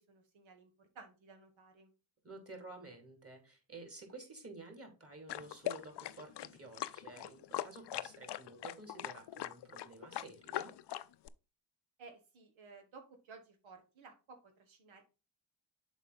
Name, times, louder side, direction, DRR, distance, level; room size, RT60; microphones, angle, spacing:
voice 1, 0.0-1.9 12.0-15.0, right 4 dB, 85° right, 5 dB, 1.4 m, -56 dB
voice 2, 2.2-10.7, right 3 dB, 30° right, 3 dB, 2.9 m, -52 dB
sound 1, 5.3-11.3, left 13 dB, 65° left, 0.5 m, -41 dB
7.2 x 4.5 x 4.0 m, 0.32 s
supercardioid pair, 50°, 46 cm